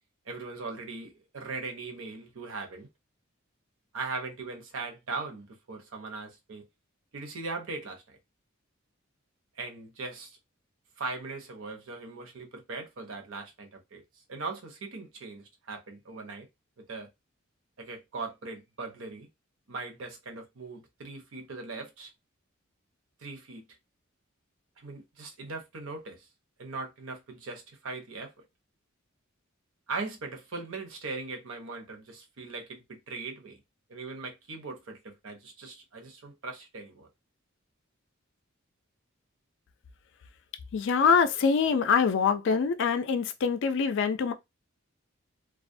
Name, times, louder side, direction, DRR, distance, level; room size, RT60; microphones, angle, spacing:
voice 1, 0.3-2.9 3.9-6.6 7.1-8.2 9.6-10.4 11.0-14.0 14.3-16.5 16.9-17.1 17.8-19.3 19.7-22.1 23.2-23.7 24.8-26.3 26.6-28.3 29.9-33.6 33.9-37.1, right 3 dB, 70° right, 0.7 m, -39 dB
voice 2, 40.7-44.3, left 6 dB, 60° left, 0.4 m, -24 dB
2.3 x 2.1 x 2.6 m
head